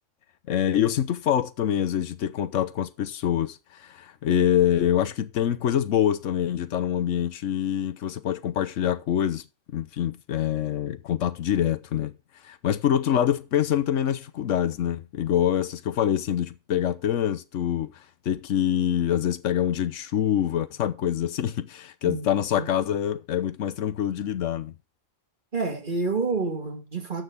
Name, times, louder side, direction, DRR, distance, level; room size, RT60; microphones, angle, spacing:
voice 1, 0.5-9.4 9.7-12.1 12.4-17.9 18.3-24.7, left 10 dB, 80° left, 1.1 m, -25 dB
voice 2, 25.5-27.2, right 4 dB, 40° right, 2.1 m, -28 dB
12.5 x 6.5 x 3.5 m
omnidirectional pair, 1.3 m